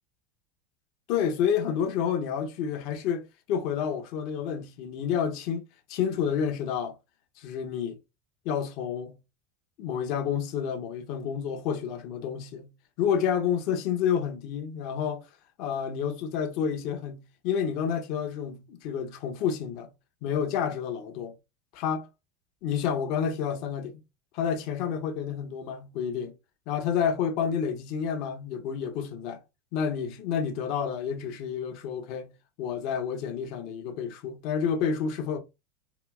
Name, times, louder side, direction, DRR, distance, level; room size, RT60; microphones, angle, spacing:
voice 1, 1.1-5.6 5.9-6.9 7.4-8.0 8.4-9.1 9.8-12.7 13.0-15.3 15.6-19.9 20.2-21.3 21.7-22.1 22.6-24.0 24.3-26.3 26.7-29.4 29.7-32.3 32.6-35.4, left 7 dB, 60° left, 0.7 m, -29 dB
3.7 x 2.3 x 2.3 m
hypercardioid pair, 90°, 0 cm